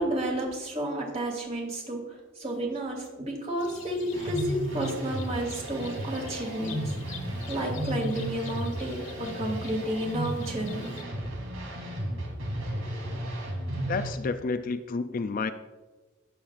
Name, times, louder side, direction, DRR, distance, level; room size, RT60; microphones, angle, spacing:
voice 1, 0.0-7.2 7.5-10.9, right 1 dB, 30° right, -1 dB, 2.7 m, -31 dB
sound 1, 3.6-11.0, left 4 dB, 65° left, 1.6 m, -46 dB
sound 2, 4.1-14.1, right 1 dB, 80° right, 3.2 m, -34 dB
voice 2, 13.9-15.5, left 4 dB, 40° left, 10 dB, 0.4 m, -30 dB
18.5 x 7.3 x 2.5 m, 1.2 s
head